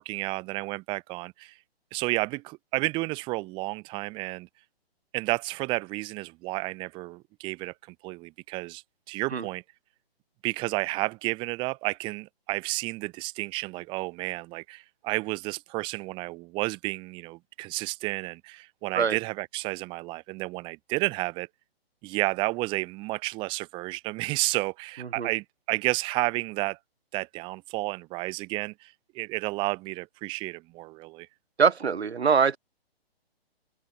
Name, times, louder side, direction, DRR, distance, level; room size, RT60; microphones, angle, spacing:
voice 1, 0.0-1.5 1.9-4.5 5.1-9.6 10.4-21.5 22.0-26.8 27.1-31.3, right 23 dB, 15° right, 0.9 m, -31 dB
voice 2, 31.6-32.6, right 6 dB, 90° right, 1.3 m, -23 dB
open air
hypercardioid pair, 150°, 31 cm